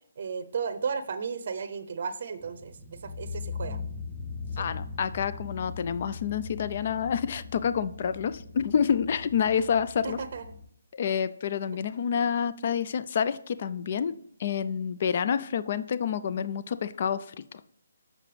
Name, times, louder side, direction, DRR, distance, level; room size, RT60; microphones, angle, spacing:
voice 1, 0.2-3.8 4.5-4.7 10.0-10.6, right 6 dB, 50° right, 11 dB, 0.6 m, -34 dB
sound 1, 2.4-10.6, left 4 dB, ahead, 1.9 m, -40 dB
voice 2, 4.6-10.2 10.9-14.1 14.4-17.6, left 7 dB, 45° left, 14 dB, 0.4 m, -28 dB
7.4 x 6.2 x 3.3 m, 0.67 s
hypercardioid pair, 160°, 0 cm